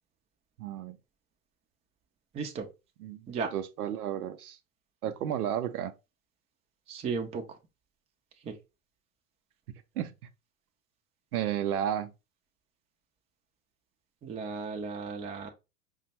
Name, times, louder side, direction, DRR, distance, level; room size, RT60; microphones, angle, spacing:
voice 1, 0.6-1.0 3.0-3.3 3.5-4.6 5.0-5.9 10.0-10.3 11.3-12.1, right 10 dB, 75° right, 0.6 m, -32 dB
voice 2, 2.3-2.7 3.3-3.5 6.9-7.6 8.4-8.5 14.2-15.5, right 5 dB, 15° right, 0.4 m, -35 dB
5.0 x 2.2 x 2.8 m
figure-of-eight pair, 90°, 46 cm